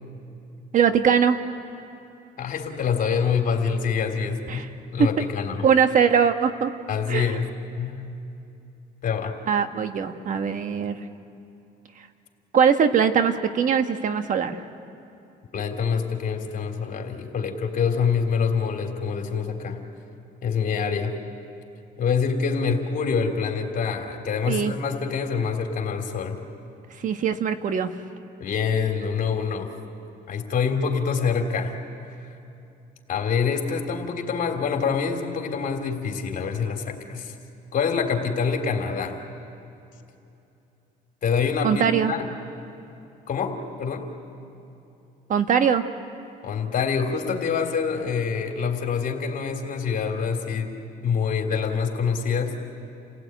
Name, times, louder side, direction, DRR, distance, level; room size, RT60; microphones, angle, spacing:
voice 1, 0.7-1.4 4.5-4.7 5.6-6.7 7.1-7.4 9.5-11.0 12.5-14.6 24.5-24.7 27.0-27.9 41.6-42.1 45.3-45.8, right 7 dB, 50° right, 8 dB, 1.3 m, -21 dB
voice 2, 2.4-4.6 4.9-5.7 6.9-7.5 7.8-8.1 9.0-9.3 15.5-19.8 20.4-21.2 22.0-26.4 28.4-29.7 30.3-31.7 33.1-37.3 37.7-39.1 41.2-42.3 43.3-44.0 46.4-50.7 51.0-52.6, left 6 dB, 55° left, 4 dB, 3.2 m, -26 dB
29.5 x 17.0 x 9.2 m, 2.7 s
cardioid pair, 110°, 17 cm